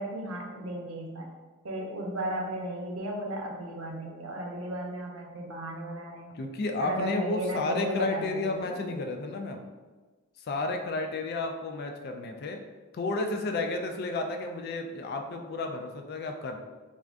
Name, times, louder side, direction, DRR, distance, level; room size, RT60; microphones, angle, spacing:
voice 1, 0.0-1.3 1.6-6.4 6.8-8.7, right 1 dB, 90° right, 0 dB, 0.6 m, -35 dB
voice 2, 6.3-9.6 10.4-12.6 12.9-16.6, left 2 dB, 50° left, 4 dB, 0.3 m, -32 dB
3.3 x 2.4 x 2.4 m, 1.3 s
head